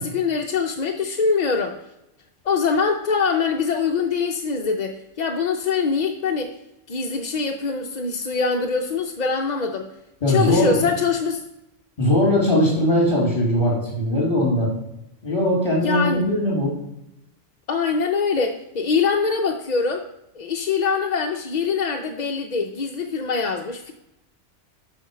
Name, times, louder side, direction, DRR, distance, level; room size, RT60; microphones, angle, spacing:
voice 1, 0.0-1.8 2.4-6.6 6.9-9.9 10.3-11.4 15.8-16.3 17.7-20.1 20.4-23.9, left 5 dB, 45° left, 3 dB, 0.6 m, -23 dB
voice 2, 10.2-10.8 12.0-14.7 15.2-16.7, left 1 dB, 30° left, -4 dB, 3.5 m, -20 dB
7.9 x 6.0 x 5.0 m, 0.88 s
omnidirectional pair, 1.2 m